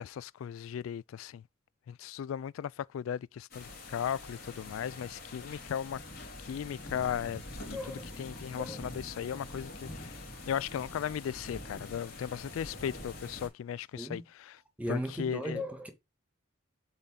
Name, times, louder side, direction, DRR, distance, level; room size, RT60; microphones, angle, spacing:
voice 1, 0.0-1.4 1.9-6.0 6.4-7.8 8.2-10.2 10.5-14.6 14.9-15.6, left 8 dB, 80° left, 0.3 m, -37 dB
sound 1, 3.5-13.5, left 2 dB, 50° left, 3.2 m, -45 dB
voice 2, 7.7-8.1 8.6-8.8 14.0-14.3 14.8-15.9, equal, 5° right, 1.7 m, -36 dB
7.5 x 4.1 x 3.8 m
head